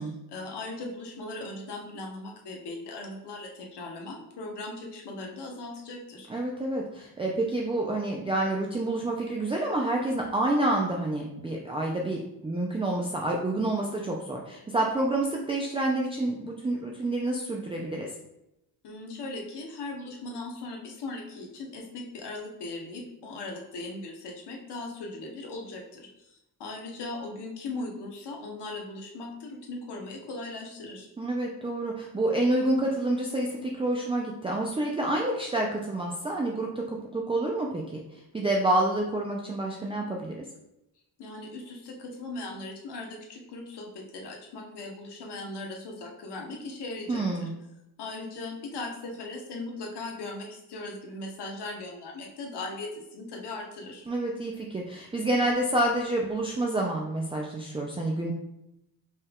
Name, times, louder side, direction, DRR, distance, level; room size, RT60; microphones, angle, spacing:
voice 1, 0.0-6.3 18.8-31.1 41.2-47.5 48.0-54.0, left 2 dB, 85° left, 0 dB, 1.0 m, -39 dB
voice 2, 6.3-18.1 31.2-37.8 38.1-40.5 47.1-47.5 54.1-58.3, right 1 dB, 15° right, -2 dB, 0.4 m, -28 dB
5.4 x 2.3 x 3.5 m, 0.88 s
wide cardioid pair, 125°, 39 cm